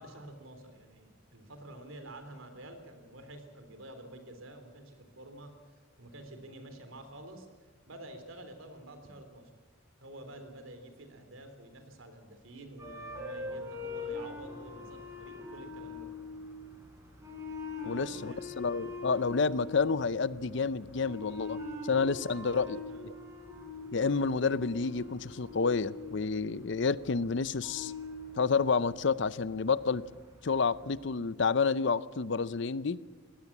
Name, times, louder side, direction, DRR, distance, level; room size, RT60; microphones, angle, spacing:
voice 1, 0.0-5.6 6.0-9.5 10.0-16.1 17.8-18.5 21.7-23.0, right 1 dB, 90° right, 7 dB, 3.5 m, -49 dB
sound 1, 12.8-30.9, left 3 dB, 15° right, 4.4 m, -43 dB
voice 2, 17.9-23.1 23.9-27.9 28.4-30.0 30.4-33.0, left 5 dB, 60° left, 17 dB, 0.6 m, -29 dB
21.5 x 17.5 x 7.3 m, 1.5 s
head